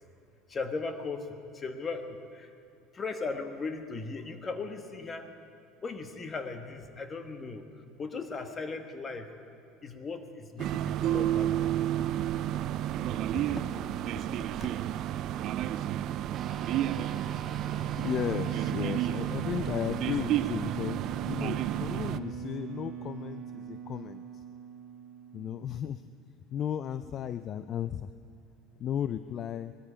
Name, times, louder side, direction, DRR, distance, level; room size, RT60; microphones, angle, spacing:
voice 1, 0.5-1.3 1.5-2.5 2.9-5.3 5.8-7.7 8.0-9.3 9.8-11.7 12.0-12.1 13.3-13.9 14.3-14.7 17.9-18.1, left 4 dB, 25° left, 7 dB, 1.3 m, -38 dB
sound 1, 10.6-22.2, right 12 dB, 55° right, 0.5 m, -31 dB
sound 2, 16.3-26.0, right 7 dB, 35° right, 1.2 m, -41 dB
voice 2, 18.0-24.4 25.3-26.1 26.5-28.1 28.8-29.7, left 9 dB, 40° left, 13 dB, 0.4 m, -35 dB
19.5 x 13.0 x 5.1 m, 2.7 s
supercardioid pair, 115°, 0 cm